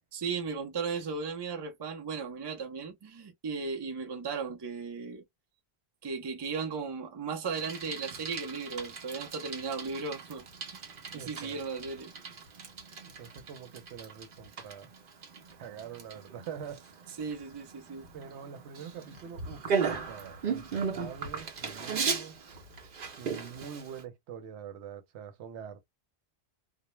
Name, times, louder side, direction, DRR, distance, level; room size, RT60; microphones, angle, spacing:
voice 1, 0.1-5.2 6.0-10.4 10.7-12.1 17.1-18.1, right 5 dB, 35° right, 0.5 m, -36 dB
Bicycle, 7.5-24.0, right 5 dB, 55° right, 0.8 m, -37 dB
voice 2, 11.1-11.6 13.0-14.9 15.6-16.8 18.1-19.7 20.1-22.4 23.2-25.8, right 7 dB, 90° right, 0.9 m, -44 dB
2.2 x 2.1 x 3.0 m
omnidirectional pair, 1.1 m